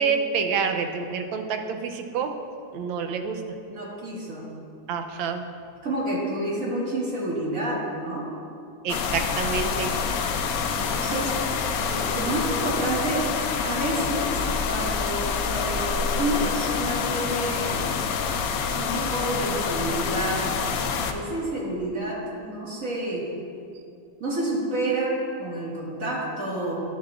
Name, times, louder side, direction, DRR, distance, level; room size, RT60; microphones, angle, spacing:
voice 1, 0.0-2.4 2.7-3.4 4.9-5.5 8.8-10.0, right 5 dB, 85° right, 5 dB, 1.4 m, -27 dB
voice 2, 3.7-4.5 5.8-8.3 10.7-11.3 11.9-13.3 13.6-17.9 18.7-20.4 20.9-23.2 24.2-25.1 25.4-26.8, right 1 dB, 45° right, -5 dB, 2.1 m, -29 dB
sound 1, 8.9-21.1, left 6 dB, 80° left, 0.8 m, -27 dB
10.5 x 10.5 x 2.4 m, 2.5 s
omnidirectional pair, 2.1 m